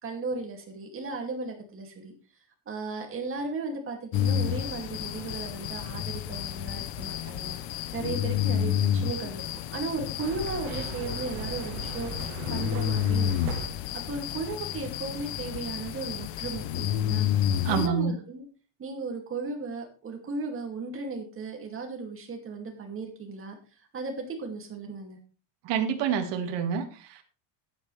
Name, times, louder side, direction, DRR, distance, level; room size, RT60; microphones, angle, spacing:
voice 1, 0.0-2.1 2.7-7.6 7.9-9.5 9.7-12.1 12.5-13.5 14.1-17.3 17.7-18.4 18.8-23.6 23.9-25.2, right 3 dB, 25° right, 2 dB, 2.5 m, -35 dB
sound 1, 4.1-17.9, left 10 dB, 60° left, 0.9 m, -30 dB
sound 2, 10.2-13.7, right 7 dB, 85° right, 1.8 m, -39 dB
voice 2, 17.6-18.2 25.6-27.2, right 7 dB, 55° right, 5 dB, 2.1 m, -28 dB
12.0 x 10.5 x 3.3 m, 0.35 s
cardioid pair, 170°, 49 cm